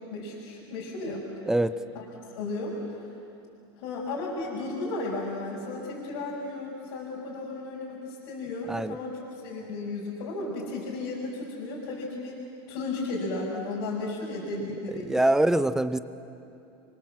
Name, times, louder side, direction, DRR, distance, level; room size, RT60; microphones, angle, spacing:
voice 1, 0.1-1.3 1.9-2.0 2.3-3.1 3.8-12.4 12.7-15.2, left 2 dB, 75° left, -5 dB, 5.8 m, -34 dB
voice 2, 15.1-16.0, right 1 dB, 5° right, 13 dB, 0.7 m, -23 dB
29.5 x 24.0 x 7.7 m, 2.7 s
supercardioid pair, 145°, 13 cm